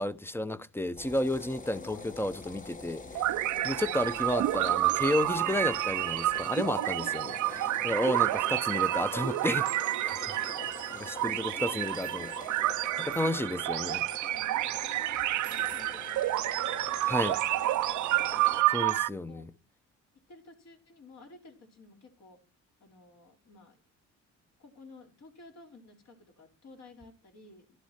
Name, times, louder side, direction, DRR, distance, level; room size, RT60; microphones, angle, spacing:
voice 1, 0.0-3.3 3.6-10.2 11.1-12.6 13.0-14.0 17.1-17.4 18.7-19.5, left 1 dB, 10° left, 0.7 m, -32 dB
sound 1, 1.0-18.6, left 3 dB, 25° left, 1.1 m, -45 dB
sound 2, 3.2-19.1, right 15 dB, 75° right, 0.6 m, -29 dB
voice 2, 6.8-7.4 9.9-10.9 11.3-12.3 13.1-16.6 18.3-18.6 19.3-19.4 20.3-22.4 22.8-23.8 24.6-27.8, left 2 dB, 60° left, 4.4 m, -53 dB
12.0 x 11.5 x 4.3 m
cardioid pair, 90°, 30 cm